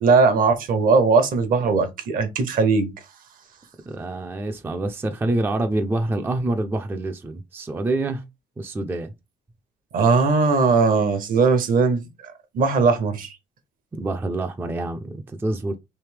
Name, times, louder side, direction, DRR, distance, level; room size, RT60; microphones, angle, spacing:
voice 1, 0.0-2.9 9.9-12.0 12.5-13.4, right 4 dB, 55° right, 0.8 m, -19 dB
voice 2, 3.9-8.2 8.6-9.1 14.0-15.7, right 2 dB, 15° right, 0.4 m, -26 dB
3.3 x 2.7 x 3.2 m
cardioid pair, 110°, 17 cm